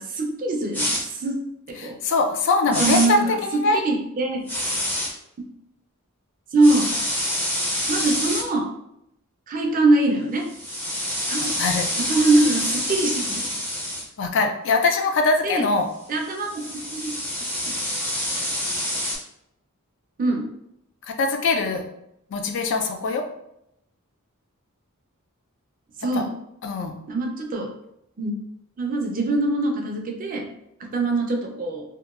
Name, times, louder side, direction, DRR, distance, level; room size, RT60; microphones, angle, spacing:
voice 1, 0.0-1.4 1.7-2.0 2.7-4.4 5.4-5.5 6.5-6.9 7.9-8.7 9.5-10.5 11.3-11.5 12.0-13.6 15.4-15.7 16.1-16.7 16.9-17.1 20.2-20.5 26.0-26.3 27.1-27.7 28.2-28.3 28.8-30.4 30.9-31.8, right 2 dB, 40° right, 1 dB, 0.4 m, -23 dB
sound 1, 0.7-1.0 2.7-3.1 4.5-5.1 6.6-8.4 10.5-14.0 16.1-19.2, left 1 dB, 10° left, 0.5 m, -27 dB
voice 2, 1.8-3.8 11.6-11.9 14.2-15.9 21.2-21.8 22.3-23.3 26.1-26.2 26.6-27.0, left 3 dB, 60° left, 4 dB, 0.4 m, -22 dB
2.8 x 2.2 x 2.4 m, 0.78 s
head